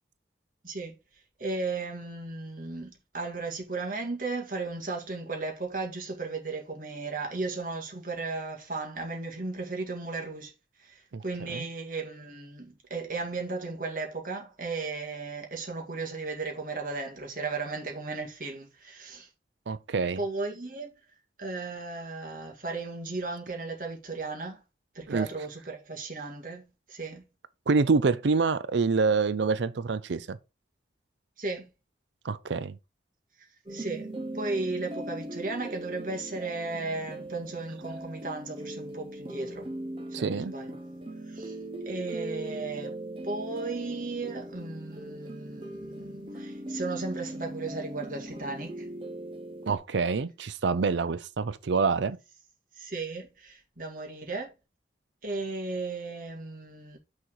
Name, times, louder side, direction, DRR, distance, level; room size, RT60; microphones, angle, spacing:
voice 1, 0.6-1.0 1.4-10.5 10.8-19.3 20.2-20.9 21.4-24.6 24.9-27.2 31.4-31.7 33.7-39.7 40.2-40.8 41.3-41.6 41.9-43.0 43.2-48.9 52.8-54.5 55.2-57.0, right 3 dB, 50° right, 2.1 m, -35 dB
voice 2, 19.7-20.2 25.1-25.3 27.7-30.4 32.2-32.8 40.1-40.5 49.7-52.2, right 4 dB, 80° right, 0.5 m, -26 dB
sound 1, 33.7-49.8, right 1 dB, 30° right, 0.9 m, -39 dB
6.4 x 4.3 x 4.7 m
head